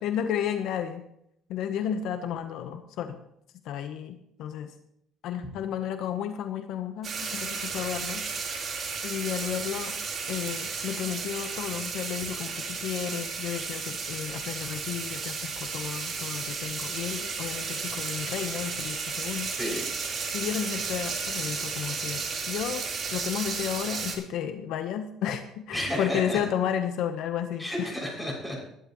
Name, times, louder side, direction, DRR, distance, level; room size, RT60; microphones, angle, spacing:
voice 1, 0.0-1.0 1.5-3.2 3.6-4.7 5.2-8.2 9.0-10.0 10.3-19.5 20.3-22.2 22.5-22.8 23.1-27.9, left 9 dB, 70° left, 8 dB, 1.0 m, -32 dB
sound 1, 7.0-24.2, right 5 dB, 40° right, 3.7 m, -33 dB
voice 2, 19.5-19.9 25.7-26.4 27.6-28.6, equal, 5° left, -1 dB, 6.4 m, -32 dB
20.0 x 10.5 x 3.1 m, 0.75 s
cardioid pair, 110°, 0 cm